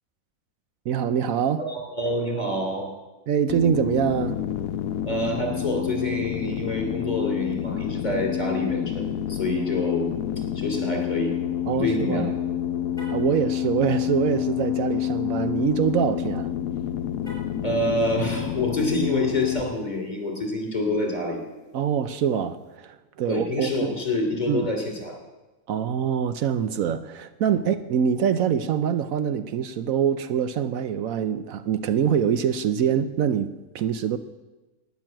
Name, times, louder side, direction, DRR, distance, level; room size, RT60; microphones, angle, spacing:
voice 1, 0.9-1.6 3.3-4.4 11.7-12.3 13.1-16.5 21.7-23.9 24.5-24.7 25.7-34.2, right 8 dB, 75° right, 12 dB, 1.1 m, -24 dB
voice 2, 1.6-2.9 5.0-10.1 10.4-11.4 11.8-12.2 17.6-21.4 23.3-25.2 27.5-27.7, left 1 dB, 30° left, 2 dB, 3.0 m, -27 dB
sound 1, 3.5-19.6, left 10 dB, 75° left, 1.1 m, -28 dB
Car, 12.9-13.3 17.2-17.7, equal, ahead, 6.6 m, -44 dB
12.0 x 9.7 x 8.9 m, 1.1 s
omnidirectional pair, 1.5 m